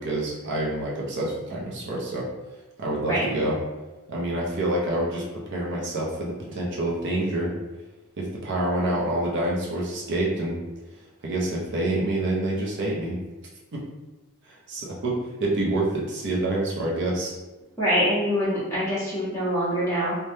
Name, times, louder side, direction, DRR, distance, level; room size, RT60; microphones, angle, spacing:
voice 1, 0.0-2.3 2.8-3.6 4.1-7.5 8.2-10.6 11.2-13.2 13.7-13.8 14.5-17.4, right 1 dB, 55° right, -4 dB, 0.6 m, -27 dB
voice 2, 17.8-20.2, equal, 15° left, -10 dB, 1.3 m, -24 dB
3.3 x 2.1 x 2.7 m, 1.1 s
head